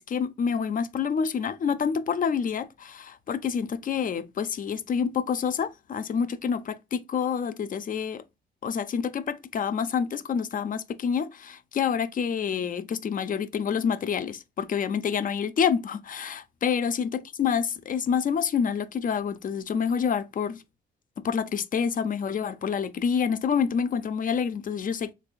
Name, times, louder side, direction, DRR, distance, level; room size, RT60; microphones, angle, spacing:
voice 1, 0.0-8.2 8.6-20.6 21.2-25.1, left 7 dB, 45° left, 0.5 m, -27 dB
3.4 x 3.3 x 2.3 m
cardioid pair, 90°, 20 cm